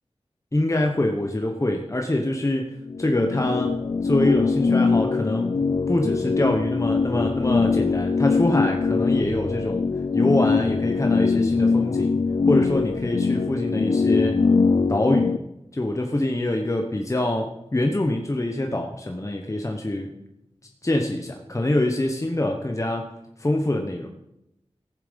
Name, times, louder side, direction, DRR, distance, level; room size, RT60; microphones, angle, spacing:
voice 1, 0.5-3.7 4.0-5.5 5.9-9.9 10.1-12.1 12.5-14.4 14.9-15.4 15.7-20.1 20.8-23.1 23.4-24.1, left 1 dB, 30° left, 3 dB, 1.0 m, -25 dB
sound 1, 2.8-15.4, left 4 dB, 50° left, 0.4 m, -22 dB
15.0 x 7.1 x 5.3 m, 0.87 s
wide cardioid pair, 75°, 11 cm